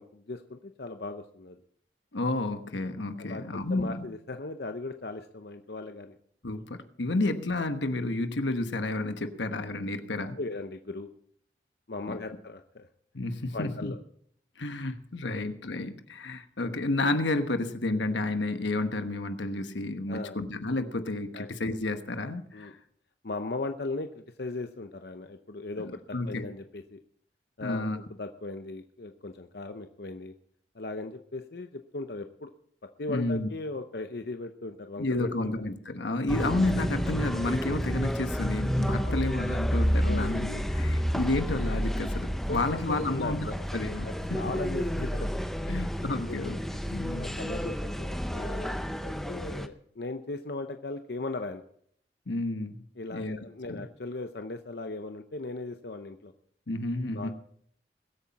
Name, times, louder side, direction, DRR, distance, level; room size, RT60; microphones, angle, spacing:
voice 1, 0.0-1.6 3.2-6.2 10.4-11.1 11.9-12.9 13.5-14.0 15.3-15.4 20.1-20.4 21.3-21.5 22.5-22.7 23.2-27.0 27.6-30.3 30.7-32.5 33.0-35.5 39.0-39.3 40.0-40.3 42.5-45.3 45.6-46.1 47.1-51.6 53.0-56.3 57.1-57.3, left 2 dB, 60° left, 7 dB, 0.7 m, -38 dB
voice 2, 2.1-4.1 6.4-10.4 12.1-12.2 13.1-13.9 14.6-22.8 25.8-26.5 27.6-28.0 33.1-33.5 35.0-44.4 45.7-46.6 46.9-47.4 52.3-52.8 53.1-53.4 53.7-53.9 56.7-57.3, left 2 dB, 85° left, 8 dB, 1.2 m, -31 dB
sound 1, 36.3-49.7, equal, ahead, 0.6 m, -30 dB
21.5 x 8.6 x 4.2 m, 0.65 s
head